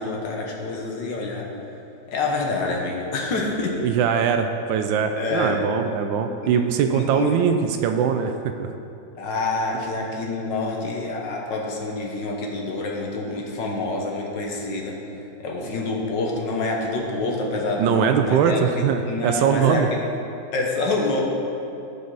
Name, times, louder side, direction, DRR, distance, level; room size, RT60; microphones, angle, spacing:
voice 1, 0.0-1.5 2.1-3.8 5.2-5.6 6.4-6.6 6.9-7.4 9.2-15.0 15.4-20.0 20.5-21.2, left 3 dB, 75° left, -1 dB, 1.8 m, -27 dB
voice 2, 3.8-8.7 17.8-19.9, right 7 dB, 85° right, 6 dB, 1.3 m, -21 dB
13.5 x 5.5 x 4.0 m, 2.7 s
omnidirectional pair, 2.0 m